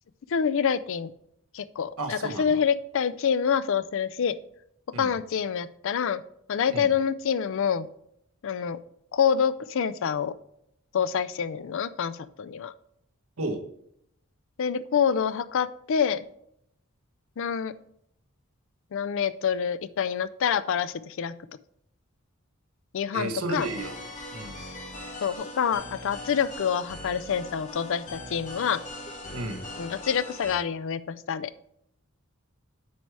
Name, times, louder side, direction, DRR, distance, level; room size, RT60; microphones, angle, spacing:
voice 1, 0.3-1.1 1.5-4.4 5.0-6.2 6.5-7.9 8.4-8.8 9.1-10.3 10.9-12.7 14.6-16.2 17.4-17.7 18.9-21.3 22.9-23.7 25.2-28.8 29.8-31.5, left 7 dB, 65° left, 14 dB, 0.4 m, -27 dB
voice 2, 2.0-2.6 4.9-5.1 6.7-6.9 13.4-13.6 23.1-24.0 24.3-24.6 29.3-29.7, right 2 dB, 85° right, 5 dB, 1.1 m, -33 dB
sound 1, 23.5-30.6, left 1 dB, 35° left, 1.9 m, -40 dB
8.4 x 4.7 x 4.6 m, 0.74 s
head